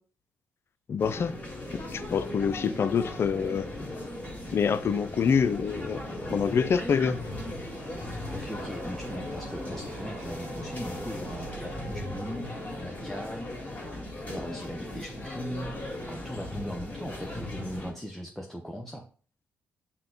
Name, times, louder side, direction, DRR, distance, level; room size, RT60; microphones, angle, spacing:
voice 1, 0.9-1.3 1.9-3.7 4.5-6.0 6.3-7.2, left 6 dB, 50° left, 0.4 m, -26 dB
sound 1, 1.0-17.9, left 1 dB, 30° left, 1.8 m, -38 dB
sound 2, 3.1-14.9 15.2-15.3 15.5-15.6 15.8-15.9, right 5 dB, 65° right, 0.6 m, -49 dB
voice 2, 8.3-13.6 14.3-15.8 16.0-19.1, equal, 5° left, 0.6 m, -39 dB
5.6 x 2.2 x 3.8 m
supercardioid pair, 65°, 5 cm